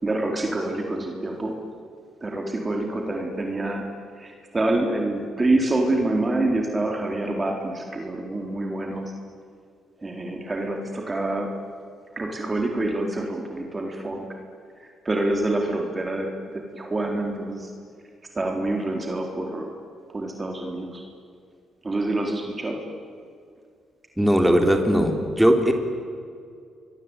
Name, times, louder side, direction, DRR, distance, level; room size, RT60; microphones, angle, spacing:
voice 1, 0.0-1.5 2.2-3.8 4.2-9.1 10.0-11.5 12.2-14.2 14.8-17.7 18.3-19.7 20.1-21.0 21.8-22.8, right 2 dB, 25° right, 2 dB, 4.0 m, -26 dB
voice 2, 24.2-25.7, equal, 5° right, 4 dB, 3.3 m, -19 dB
28.5 x 23.0 x 9.1 m, 2.3 s
cardioid pair, 90°, 0 cm